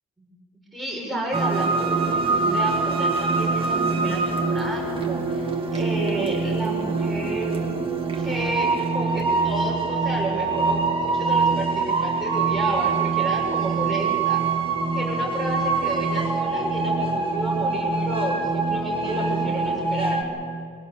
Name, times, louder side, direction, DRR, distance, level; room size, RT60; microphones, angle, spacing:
voice 1, 0.7-7.6 8.2-14.4 14.9-20.3, right 1 dB, ahead, -2 dB, 6.7 m, -31 dB
sound 1, 1.3-20.2, right 4 dB, 20° right, 2.1 m, -24 dB
25.0 x 18.0 x 7.0 m, 2.5 s
wide cardioid pair, 150°, 30 cm